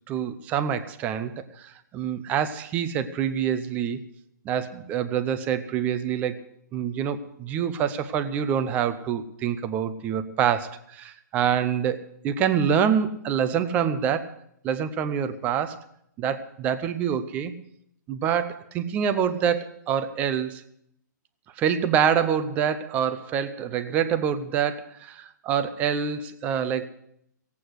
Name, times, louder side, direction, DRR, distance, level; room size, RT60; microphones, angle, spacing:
voice 1, 0.1-4.0 4.4-6.4 6.7-14.3 14.6-15.8 16.2-17.5 18.1-20.6 21.6-26.9, right 8 dB, 15° right, 11 dB, 0.7 m, -26 dB
17.0 x 8.4 x 7.9 m, 0.73 s
hypercardioid pair, 165°, 10 cm